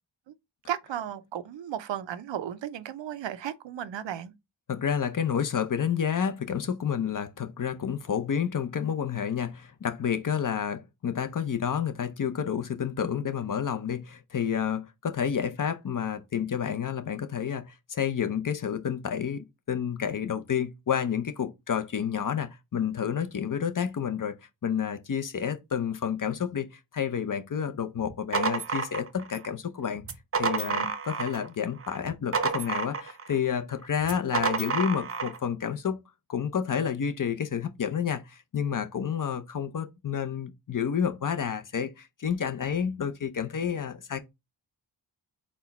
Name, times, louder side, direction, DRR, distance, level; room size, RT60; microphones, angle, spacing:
voice 1, 0.7-4.3 30.6-30.9, right 10 dB, 80° right, 0.6 m, -35 dB
voice 2, 4.7-24.4 24.6-30.0 30.4-36.0 36.3-44.2, left 8 dB, 45° left, 0.7 m, -30 dB
sound 1, 28.0-29.5 30.0-31.5 31.8-33.3 34.0-35.4, right 5 dB, 30° right, 0.6 m, -30 dB
4.3 x 2.2 x 4.1 m
wide cardioid pair, 70°, 43 cm